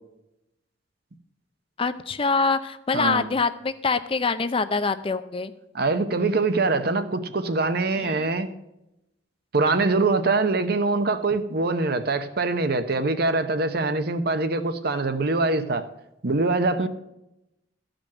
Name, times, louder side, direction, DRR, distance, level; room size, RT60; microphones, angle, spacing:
voice 1, 1.8-5.5 8.0-8.3, left 4 dB, 30° left, 0.5 m, -25 dB
voice 2, 2.9-3.3 5.7-8.5 9.5-15.9 16.2-16.9, right 3 dB, 60° right, 0.9 m, -23 dB
13.5 x 5.1 x 7.3 m
head